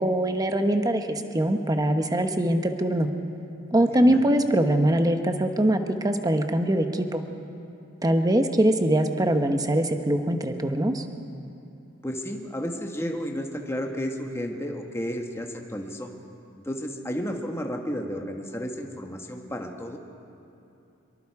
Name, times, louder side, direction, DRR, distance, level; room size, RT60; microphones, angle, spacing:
voice 1, 0.0-3.1 3.7-7.2 8.0-11.0, right 1 dB, 20° right, 6 dB, 1.0 m, -23 dB
voice 2, 12.0-16.1 16.6-20.0, equal, 15° left, 2 dB, 1.5 m, -32 dB
24.5 x 23.0 x 4.8 m, 2.8 s
head